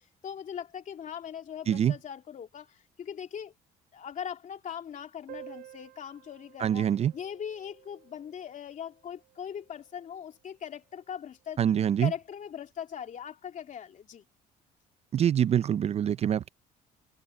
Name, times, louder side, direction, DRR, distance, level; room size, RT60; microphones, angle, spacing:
voice 1, 0.0-3.5 3.9-14.3, left 8 dB, 50° left, 2.8 m, -40 dB
Piano, 5.3-10.6 10.9-11.0 11.2-11.4 11.7-11.8 12.6-12.7, right 15 dB, 80° right, 2.4 m, -52 dB
voice 2, 6.6-7.1 11.6-12.1 15.1-16.5, right 9 dB, 40° right, 0.4 m, -25 dB
cardioid pair, 110°, 17 cm